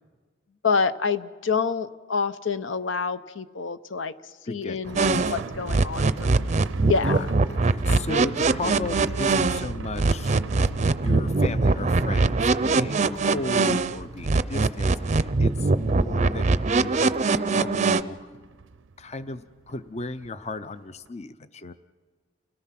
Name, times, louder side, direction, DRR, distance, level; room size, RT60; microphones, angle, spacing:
voice 1, 0.6-4.1 4.4-6.5 6.8-7.2, left 5 dB, 75° left, 12 dB, 0.8 m, -27 dB
voice 2, 4.4-5.2 7.0-10.5 11.0-18.3 19.0-21.7, left 2 dB, 35° left, 12 dB, 0.6 m, -35 dB
sound 1, 4.8-20.3 20.6-20.7 21.1-21.2, right 4 dB, 80° right, 0.6 m, -38 dB
sound 2, 5.0-9.7 10.0-14.0 14.2-18.0, right 3 dB, 40° right, 0.5 m, -22 dB
29.5 x 17.5 x 5.9 m, 1.4 s
head